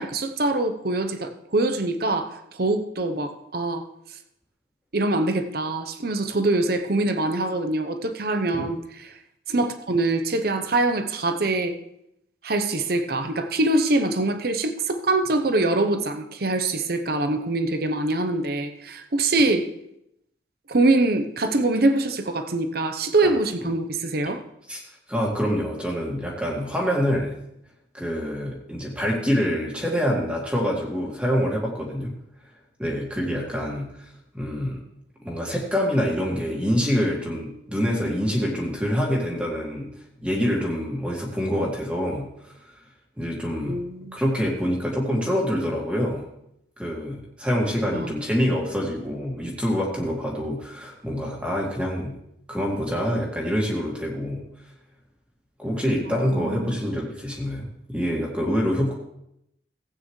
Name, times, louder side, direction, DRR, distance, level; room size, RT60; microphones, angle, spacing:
voice 1, 0.0-3.8 4.9-8.8 9.5-11.8 12.4-19.7 20.7-24.4 43.6-44.2 47.9-48.1 56.1-56.8, right 2 dB, 50° right, 8 dB, 0.8 m, -24 dB
voice 2, 24.7-27.4 27.9-32.2 32.8-34.8 35.2-39.9 40.2-42.5 43.2-43.8 44.1-46.3 46.8-52.2 52.5-54.5 55.6-58.9, equal, 5° right, -2 dB, 2.0 m, -26 dB
16.5 x 8.9 x 3.2 m, 0.79 s
head